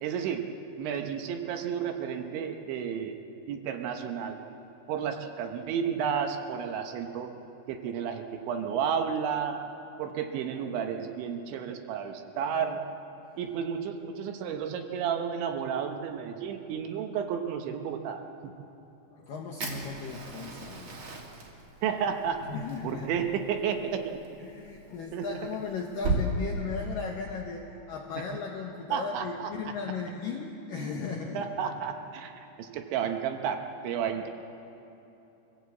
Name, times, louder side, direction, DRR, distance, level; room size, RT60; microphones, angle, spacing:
voice 1, 0.0-0.5 0.8-3.2 3.5-4.4 4.9-7.3 7.7-9.6 10.0-12.8 13.4-18.5 21.8-22.4 22.8-24.2 25.1-25.3 28.2-28.3 28.9-29.5 31.3-34.3, right 7 dB, 75° right, 5 dB, 3.2 m, -32 dB
voice 2, 19.1-20.9 22.4-23.3 24.4-31.6, left 5 dB, 75° left, 0 dB, 2.0 m, -36 dB
Fire, 19.6-26.2, right 4 dB, 40° right, 2.6 m, -37 dB
24.0 x 16.0 x 8.2 m, 2.9 s
omnidirectional pair, 5.7 m